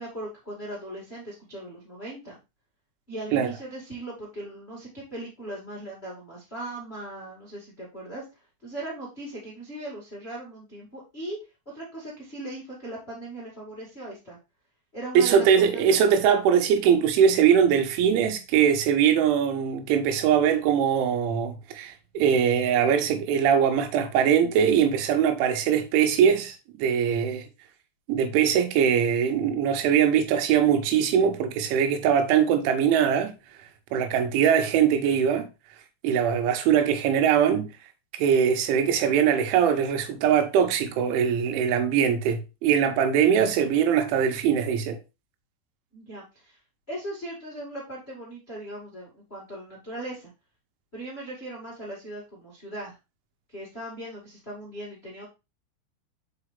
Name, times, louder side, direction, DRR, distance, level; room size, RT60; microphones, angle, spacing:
voice 1, 0.0-2.4 3.1-8.2 8.6-11.4 11.6-14.4 14.9-16.0 45.9-46.6 46.9-50.3 50.9-53.0 53.5-55.2, right 1 dB, 75° left, 0.5 m, -38 dB
voice 2, 15.2-27.4 28.1-33.3 33.9-35.5 36.0-37.7 38.1-45.0, right 8 dB, 85° right, 3.3 m, -22 dB
6.0 x 5.0 x 3.4 m
omnidirectional pair, 5.5 m